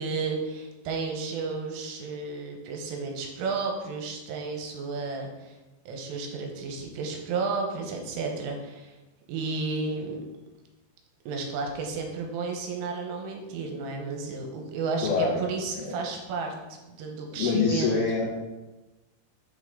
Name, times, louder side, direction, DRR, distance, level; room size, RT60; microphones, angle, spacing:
voice 1, 0.0-5.6 5.9-9.0 9.3-10.2 11.3-17.9, right 4 dB, 80° right, 2 dB, 3.5 m, -32 dB
voice 2, 15.0-15.4 15.8-16.0 17.4-18.5, left 4 dB, 65° left, -6 dB, 2.8 m, -25 dB
7.7 x 6.3 x 3.8 m, 1.1 s
omnidirectional pair, 5.7 m